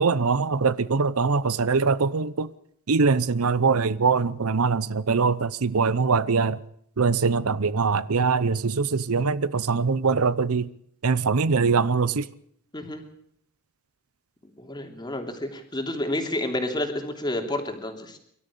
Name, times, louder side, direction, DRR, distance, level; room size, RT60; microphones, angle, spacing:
voice 1, 0.0-2.5 2.9-6.6 7.0-10.7 11.0-12.3, right 4 dB, 80° right, 0.7 m, -22 dB
voice 2, 12.7-13.0 14.6-18.2, left 1 dB, 20° left, 3.1 m, -30 dB
24.0 x 13.0 x 8.4 m
head